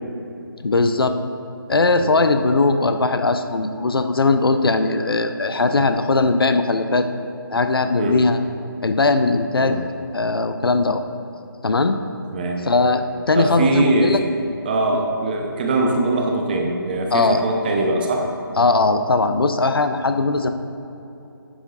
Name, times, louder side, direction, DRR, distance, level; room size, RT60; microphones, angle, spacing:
voice 1, 0.6-1.2 1.7-7.1 7.5-8.4 8.8-9.8 10.1-11.0 11.6-12.0 12.6-14.2 14.9-15.0 17.1-17.4 18.6-20.5, left 3 dB, 75° left, 8 dB, 0.7 m, -19 dB
voice 2, 13.4-14.2 14.6-18.2, right 2 dB, 25° right, 1 dB, 0.9 m, -21 dB
12.0 x 10.0 x 2.6 m, 2.9 s
figure-of-eight pair, 160°, 12 cm